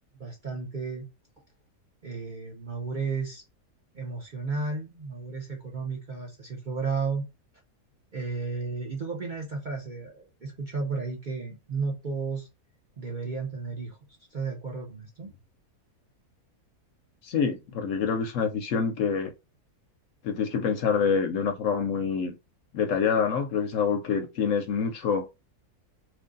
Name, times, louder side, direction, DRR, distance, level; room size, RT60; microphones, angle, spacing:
voice 1, 0.2-1.0 2.0-3.4 3.9-7.2 8.1-12.5 13.0-14.0 14.3-15.3, right 4 dB, 50° right, 0.6 m, -33 dB
voice 2, 17.2-19.3 20.2-22.3 22.7-25.2, left 6 dB, 65° left, 0.9 m, -26 dB
3.1 x 2.6 x 3.7 m
omnidirectional pair, 1.6 m